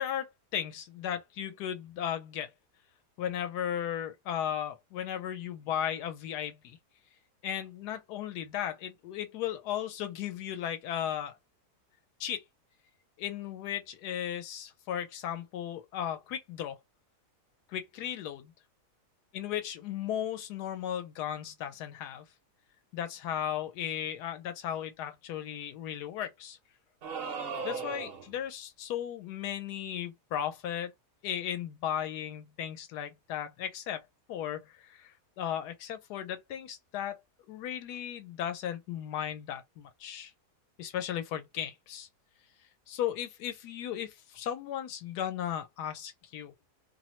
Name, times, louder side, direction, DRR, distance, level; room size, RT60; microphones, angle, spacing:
voice 1, 0.0-2.5 3.2-6.8 7.4-11.4 12.2-12.4 13.2-16.8 17.7-18.5 19.3-22.3 22.9-26.6 27.6-30.9 31.2-34.0 34.3-37.2 37.5-40.3 40.8-42.1 42.9-46.5, left 10 dB, 90° left, 1.2 m, -36 dB
sound 1, 27.0-28.4, right 5 dB, 55° right, 0.6 m, -37 dB
2.8 x 2.1 x 2.9 m
omnidirectional pair, 1.7 m